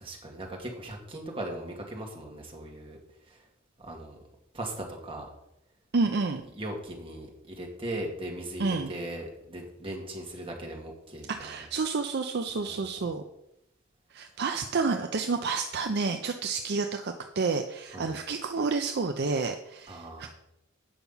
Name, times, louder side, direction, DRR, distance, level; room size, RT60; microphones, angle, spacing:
voice 1, 0.0-3.0 3.3-3.4 3.8-4.2 4.5-5.3 6.6-11.5 12.7-12.8 17.9-18.1 19.9-20.3, right 1 dB, 25° right, 0 dB, 1.9 m, -38 dB
voice 2, 5.9-6.4 8.6-8.9 11.3-13.2 14.1-20.3, right 4 dB, 55° right, 5 dB, 0.6 m, -29 dB
8.7 x 5.9 x 5.5 m, 0.85 s
head